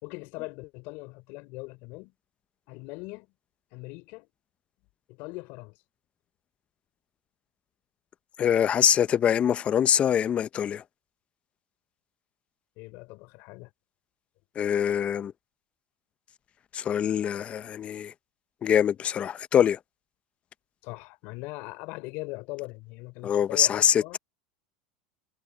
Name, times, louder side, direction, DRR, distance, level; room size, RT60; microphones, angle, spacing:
voice 1, 0.0-2.1 2.7-3.3 3.7-4.3 5.1-5.8 12.8-13.7 20.8-24.2, left 25 dB, 60° left, 3.8 m, -40 dB
voice 2, 8.4-10.8 14.5-15.3 16.7-18.1 18.6-19.8 23.2-24.2, left 9 dB, 35° left, 0.9 m, -24 dB
supercardioid pair, 110°, 4 cm